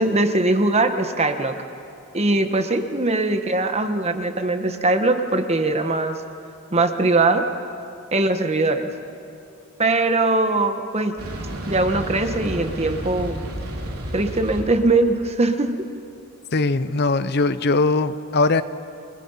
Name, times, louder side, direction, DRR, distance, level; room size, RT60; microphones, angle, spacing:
voice 1, 0.0-1.6 2.1-6.2 6.7-7.4 8.1-8.9 9.8-11.1 11.7-13.4 14.1-15.9, right 2 dB, 30° right, 7 dB, 1.2 m, -21 dB
sound 1, 11.2-14.6, equal, 90° right, 3.8 m, -31 dB
voice 2, 16.5-18.6, left 3 dB, 50° left, 13 dB, 0.6 m, -20 dB
29.5 x 21.0 x 5.7 m, 2.6 s
head